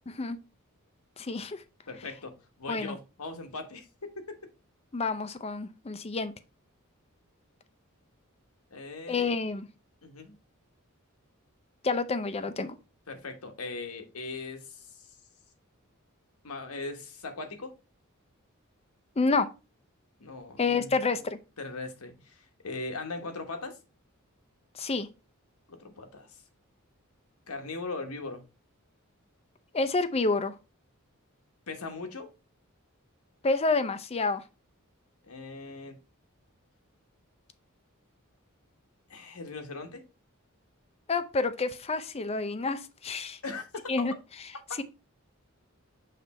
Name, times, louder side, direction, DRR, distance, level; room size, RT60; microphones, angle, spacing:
voice 1, 1.2-1.6 2.7-3.0 4.9-6.3 9.1-9.7 11.8-12.8 19.2-19.5 20.6-21.4 24.7-25.1 29.7-30.6 33.4-34.4 41.1-43.4 43.9-44.1 44.8-44.9, left 3 dB, 30° left, 0.5 m, -28 dB
voice 2, 1.9-4.4 8.7-9.3 10.0-10.4 13.1-15.1 16.4-17.7 20.2-20.9 21.6-23.8 25.7-26.4 27.5-28.4 31.7-32.3 35.2-36.0 39.1-40.0 43.4-43.8, left 3 dB, 90° left, 1.2 m, -39 dB
6.7 x 3.3 x 4.2 m
head